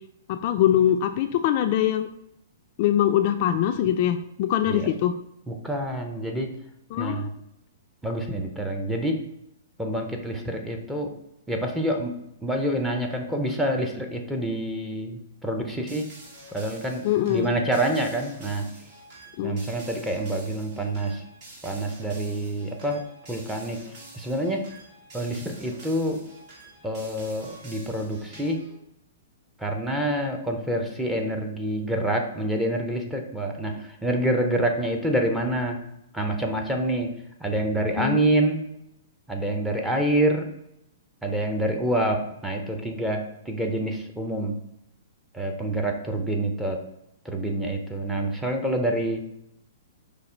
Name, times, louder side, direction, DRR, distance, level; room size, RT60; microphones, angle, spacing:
voice 1, 0.3-2.1 2.8-5.1 6.9-7.3 17.0-17.6 19.4-19.6 38.0-38.2, left 11 dB, 45° left, 7 dB, 0.3 m, -23 dB
voice 2, 5.5-6.5 7.0-7.3 8.0-9.2 9.8-11.2 11.5-16.1 16.5-18.7 19.4-21.2 21.6-23.8 24.1-24.6 25.1-26.2 26.8-28.7 29.6-35.8 36.1-37.1 37.4-38.7 39.3-40.5 41.2-44.6 45.3-46.8 47.2-49.2, right 1 dB, 5° right, 2 dB, 0.7 m, -27 dB
sound 1, 15.9-28.8, right 1 dB, 45° right, 1.6 m, -47 dB
4.8 x 2.4 x 4.4 m, 0.80 s
hypercardioid pair, 135°, 0 cm